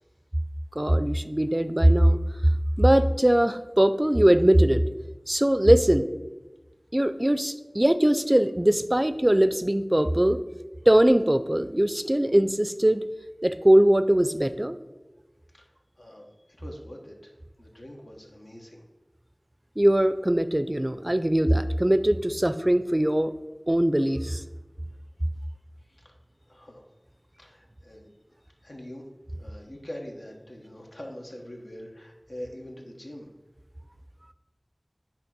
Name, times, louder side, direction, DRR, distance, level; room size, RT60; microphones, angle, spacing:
voice 1, 0.8-2.2 2.8-4.8 5.3-6.1 6.9-10.4 10.9-13.0 13.4-14.8 19.8-23.3 23.7-24.4, right 1 dB, 30° right, 11 dB, 0.4 m, -21 dB
voice 2, 16.0-16.3 16.6-17.3 17.6-18.8 25.9-26.1 26.5-26.8 27.4-28.1 28.6-29.0 29.4-33.3, equal, 80° left, 0 dB, 1.2 m, -43 dB
8.6 x 2.9 x 6.0 m, 1.1 s
wide cardioid pair, 40°, 0 cm